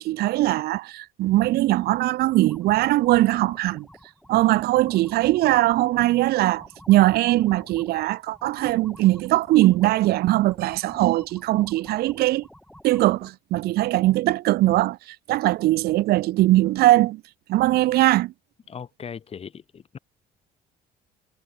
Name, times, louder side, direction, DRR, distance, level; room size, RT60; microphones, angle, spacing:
voice 1, 0.0-3.9 4.3-12.5 12.8-17.2 17.5-18.3, right 17 dB, 70° right, 0.5 m, -21 dB
sound 1, 1.7-13.3, left 1 dB, 5° left, 5.5 m, -49 dB
voice 2, 18.7-20.0, left 7 dB, 35° left, 1.7 m, -38 dB
cardioid pair, 110°, 17 cm